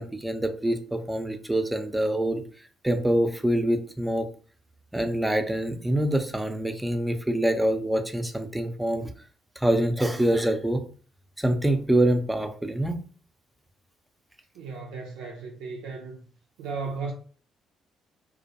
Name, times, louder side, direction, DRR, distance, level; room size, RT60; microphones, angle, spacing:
voice 1, 0.0-2.4 2.8-4.3 4.9-9.1 9.6-10.8 11.4-12.9, right 1 dB, 10° right, 0.5 m, -25 dB
voice 2, 14.5-16.2 16.6-17.1, right 4 dB, 75° right, 0.4 m, -35 dB
2.2 x 2.1 x 2.8 m
hypercardioid pair, 50°, 0 cm